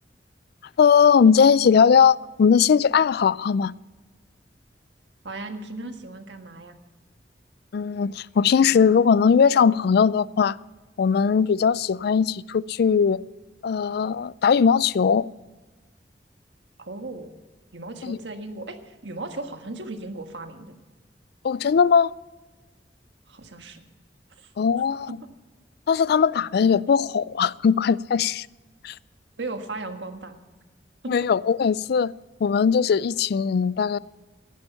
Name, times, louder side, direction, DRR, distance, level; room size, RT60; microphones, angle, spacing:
voice 1, 0.8-3.7 7.7-10.6 11.0-13.2 13.6-15.3 18.0-18.2 21.4-22.1 24.6-25.1 25.9-28.5 28.8-28.9 31.1-32.1 32.4-34.0, left 6 dB, 60° left, 0.3 m, -19 dB
voice 2, 5.2-6.7 16.8-17.3 17.7-20.8 23.3-23.8 24.4-24.5 25.2-25.3 29.4-30.4 31.0-31.1, right 2 dB, 80° right, 1.5 m, -36 dB
15.0 x 11.5 x 5.6 m
head